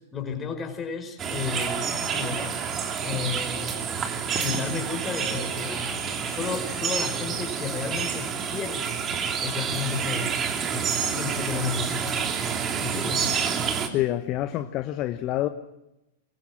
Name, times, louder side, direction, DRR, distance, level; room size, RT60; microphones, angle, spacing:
voice 1, 0.1-2.6 3.0-3.9 4.4-8.9 9.4-10.3 10.7-12.2 12.8-13.3, left 6 dB, 20° left, 5.3 m, -33 dB
sound 1, 1.2-13.9, right 6 dB, 25° right, 2.9 m, -28 dB
voice 2, 13.8-15.5, left 14 dB, 40° left, 1.1 m, -27 dB
23.0 x 23.0 x 7.5 m
figure-of-eight pair, 95°, 0 cm